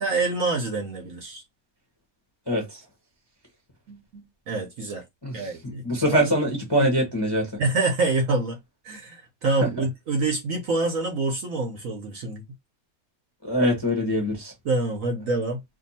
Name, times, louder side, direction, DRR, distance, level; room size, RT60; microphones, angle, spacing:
voice 1, 0.0-1.4 3.9-5.0 5.3-6.4 6.8-6.9 7.6-8.6 8.8-12.4 14.6-15.6, right 3 dB, 60° right, 1.0 m, -26 dB
voice 2, 2.5-2.8 5.2-7.5 9.6-9.7 13.4-14.5, equal, 20° left, 0.7 m, -24 dB
2.6 x 2.6 x 4.0 m
omnidirectional pair, 1.9 m